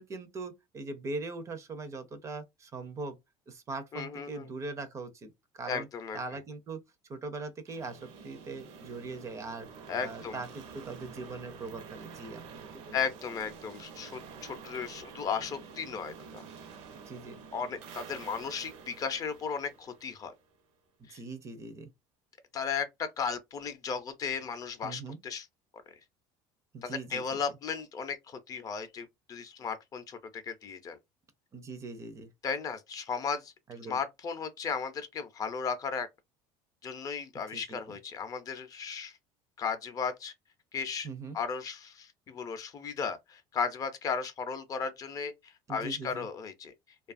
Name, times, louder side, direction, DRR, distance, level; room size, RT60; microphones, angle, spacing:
voice 1, 0.0-3.2 3.5-5.9 6.1-6.8 7.1-9.7 10.0-13.0 16.9-17.4 21.0-21.9 24.8-25.2 26.7-27.4 31.5-32.3 33.7-34.0 37.5-38.0 41.0-41.4 45.7-46.3, right 3 dB, 30° right, 0.5 m, -41 dB
voice 2, 3.9-4.5 5.7-6.2 9.9-10.4 12.9-16.4 17.5-20.3 21.1-21.2 22.5-25.5 26.8-31.0 32.4-33.5 33.9-36.1 36.8-39.2 39.6-40.3 40.7-41.1 41.3-46.7, left 6 dB, 30° left, 0.5 m, -35 dB
sound 1, 7.7-20.5, right 5 dB, 70° right, 0.7 m, -48 dB
2.7 x 2.3 x 2.5 m
cardioid pair, 145°, 11 cm